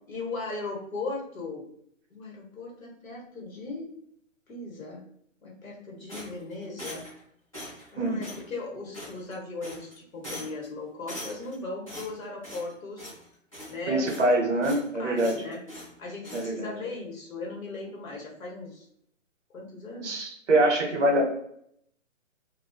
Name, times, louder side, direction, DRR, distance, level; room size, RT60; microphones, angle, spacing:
voice 1, 0.1-1.6 2.1-3.9 4.5-5.0 5.4-7.0 7.9-13.1 13.7-14.1 14.5-14.7 15.0-15.6 16.0-18.9 19.5-20.2 21.1-21.2, left 3 dB, 85° left, -1 dB, 1.2 m, -38 dB
sound 1, 6.1-7.2 7.5-7.9 8.2-8.4 8.9-9.3 9.6-9.9 10.2-10.7 11.1-11.6 11.9-12.7 13.0-13.2 13.5-14.3 14.6-14.9 15.2-15.9 16.2-16.5, equal, 25° left, 0.7 m, -41 dB
voice 2, 13.9-15.4 16.3-16.7 20.0-21.2, right 1 dB, 60° right, 2 dB, 0.8 m, -24 dB
2.5 x 2.3 x 2.2 m, 0.69 s
hypercardioid pair, 180°, 40 cm